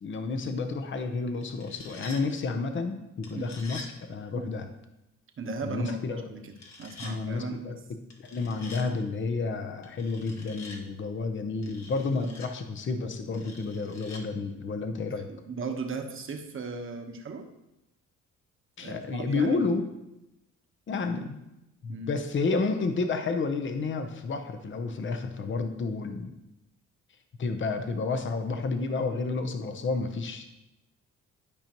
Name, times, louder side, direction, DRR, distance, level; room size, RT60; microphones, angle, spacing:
voice 1, 0.0-4.7 5.6-6.3 7.0-15.3 18.8-19.8 20.9-21.4 21.8-26.3 27.4-30.4, left 4 dB, 40° left, 7 dB, 0.8 m, -31 dB
sound 1, 1.4-2.2 3.2-3.9 6.5-7.1 8.1-8.9 9.8-10.8 11.6-12.5 13.3-14.2, left 3 dB, 60° left, 1.4 m, -46 dB
voice 2, 5.4-6.5 6.8-7.8 12.2-12.4 15.3-17.5 18.8-19.8 21.9-22.1, right 4 dB, 45° right, 4 dB, 1.2 m, -36 dB
12.0 x 5.1 x 3.0 m, 0.91 s
cardioid pair, 90°, 30 cm